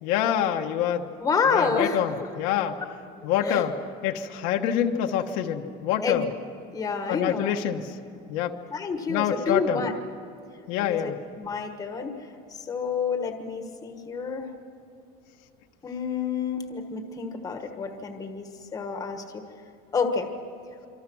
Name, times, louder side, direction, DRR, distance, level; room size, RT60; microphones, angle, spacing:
voice 1, 0.0-1.1 1.5-2.8 3.2-3.7 4.0-6.3 7.1-8.0 8.3-8.6 9.1-9.9 10.7-11.2, left 10 dB, 65° left, 4 dB, 1.3 m, -26 dB
voice 2, 1.2-2.0 3.4-3.6 6.0-6.2 6.7-7.5 8.7-9.9 10.8-12.2 12.7-14.5 15.8-19.4 19.9-20.3, left 5 dB, 15° left, 6 dB, 1.4 m, -29 dB
26.5 x 25.0 x 6.3 m, 2.6 s
cardioid pair, 175°, 20 cm